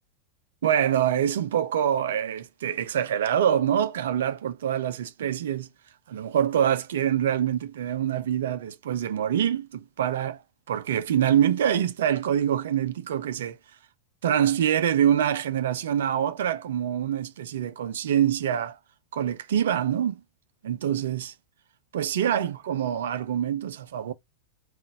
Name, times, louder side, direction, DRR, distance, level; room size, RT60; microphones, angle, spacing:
voice 1, 0.6-5.7 6.1-10.4 10.7-13.6 14.2-18.8 19.1-20.2 20.6-21.3 21.9-24.1, right 9 dB, 60° right, 0.5 m, -25 dB
3.9 x 2.5 x 3.3 m
figure-of-eight pair, 90°, 0 cm